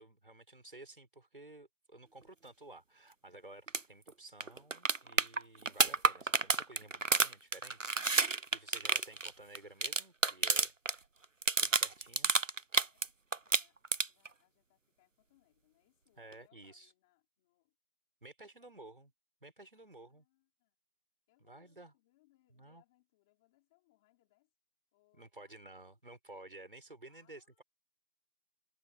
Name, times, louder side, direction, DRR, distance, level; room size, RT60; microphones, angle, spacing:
voice 1, 0.0-7.9 8.5-11.0 11.6-12.3 16.2-16.9 18.2-19.1 19.4-20.2 21.4-21.9 22.5-22.8 25.1-27.6, right 2 dB, 35° right, 6.2 m, -54 dB
sound 1, 3.7-3.8 4.1-4.2 4.4-11.0 11.2-13.1 13.3-14.3 16.3-16.4, right 3 dB, 55° right, 0.5 m, -30 dB
voice 2, 12.8-17.7 18.5-18.9 19.7-20.7 21.3-24.5 24.9-25.9 27.1-27.6, left 18 dB, ahead, 4.6 m, -74 dB
figure-of-eight pair, 180°, 47 cm